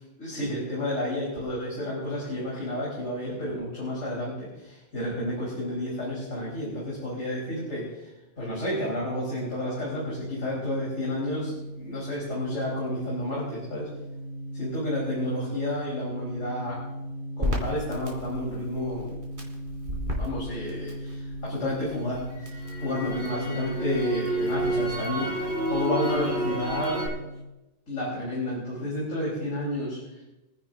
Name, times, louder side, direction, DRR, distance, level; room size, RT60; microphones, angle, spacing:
voice 1, 0.2-8.1 8.4-13.9 14.5-16.8 17.4-19.1 20.2-27.1 27.9-30.2, left 1 dB, 80° left, -6 dB, 4.2 m, -31 dB
sound 1, 9.2-27.5, equal, 20° right, 4.4 m, -38 dB
Crackle, 17.4-21.5 21.9-27.1, right 1 dB, 40° right, 2.9 m, -31 dB
26.0 x 10.0 x 2.5 m, 0.99 s
omnidirectional pair, 1.3 m